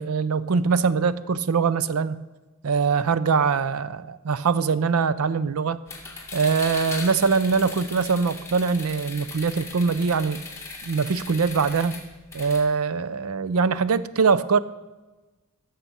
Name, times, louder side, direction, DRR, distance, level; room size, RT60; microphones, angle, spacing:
voice 1, 0.0-2.2 2.6-5.8 6.3-10.4 10.8-12.0 12.3-14.6, right 5 dB, 80° right, 15 dB, 0.5 m, -23 dB
sound 1, 5.9-12.6, left 4 dB, 15° left, 1.8 m, -38 dB
15.5 x 6.7 x 6.1 m, 1.2 s
head